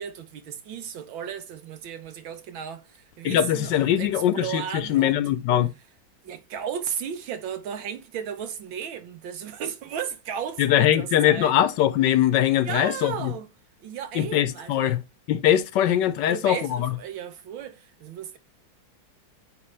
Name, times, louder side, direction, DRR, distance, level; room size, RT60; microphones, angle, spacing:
voice 1, 0.0-5.2 6.2-11.6 12.6-13.5 13.8-15.0 16.3-18.4, right 8 dB, 80° right, 1.6 m, -35 dB
voice 2, 3.2-5.7 10.6-13.3 14.1-15.0 15.3-16.9, left 11 dB, 75° left, 1.1 m, -22 dB
9.5 x 3.2 x 3.2 m
omnidirectional pair, 2.1 m